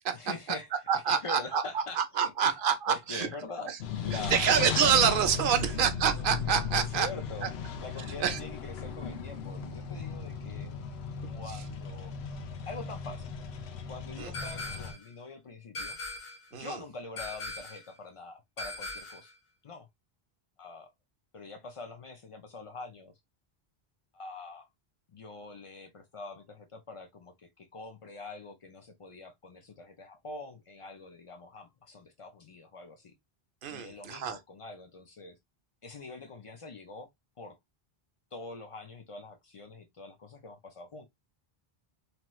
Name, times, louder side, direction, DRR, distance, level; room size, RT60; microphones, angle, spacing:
voice 1, 0.1-0.7 1.1-2.3 2.9-3.7 4.0-4.5 5.5-5.7 6.8-7.5 7.8-10.7 11.2-12.1 12.7-13.3 13.9-16.0 16.5-19.3 19.6-19.9 20.6-20.9 21.3-23.1 24.1-24.7 25.1-33.1 33.7-35.4 35.8-37.1 37.4-37.6 38.3-41.1, left 3 dB, 50° left, 0.4 m, -44 dB
voice 2, 0.9-3.3 3.7-3.8 4.1-7.1 7.4-7.5 8.2-8.4 11.5-11.6 14.2-14.3 16.5-16.8 33.6-34.4, right 8 dB, 65° right, 0.7 m, -27 dB
sound 1, 3.8-14.9, left 5 dB, 90° left, 0.9 m, -36 dB
sound 2, 14.3-15.1 15.7-16.5 17.2-17.9 18.6-19.3, left 2 dB, 70° left, 1.2 m, -40 dB
2.9 x 2.2 x 3.0 m
omnidirectional pair, 1.0 m